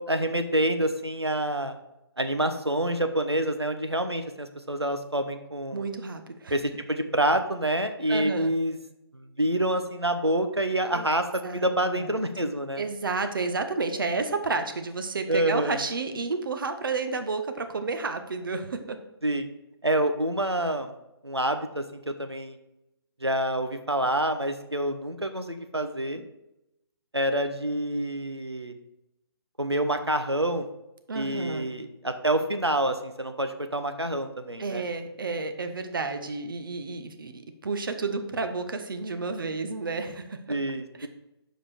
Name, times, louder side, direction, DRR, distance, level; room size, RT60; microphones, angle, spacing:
voice 1, 0.0-1.8 2.2-5.9 6.5-8.8 9.1-12.8 15.3-15.8 19.2-19.5 19.8-20.9 21.2-22.6 23.2-26.2 27.1-28.7 29.6-30.7 31.1-34.8 40.5-41.1, right 1 dB, 90° right, 8 dB, 0.8 m, -27 dB
voice 2, 5.7-6.5 8.1-8.5 10.9-11.1 11.4-12.1 12.8-19.0 31.1-31.7 34.6-40.4 41.0-41.1, right 4 dB, 55° right, 8 dB, 0.9 m, -31 dB
6.8 x 5.1 x 4.3 m, 0.89 s
figure-of-eight pair, 135°, 13 cm